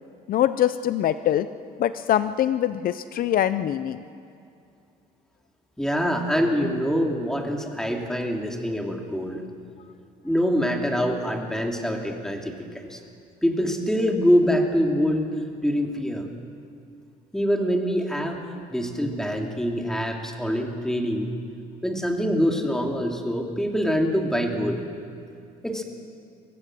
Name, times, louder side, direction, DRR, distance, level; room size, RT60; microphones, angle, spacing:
voice 1, 0.3-1.5 1.8-4.0, left 11 dB, 60° left, 12 dB, 0.7 m, -23 dB
voice 2, 5.8-9.4 10.2-13.0 13.4-15.3 15.6-16.3 17.3-21.4 21.8-24.8 25.6-25.8, equal, 5° left, 2 dB, 2.8 m, -25 dB
24.0 x 17.5 x 7.8 m, 2.4 s
cardioid pair, 110°, 17 cm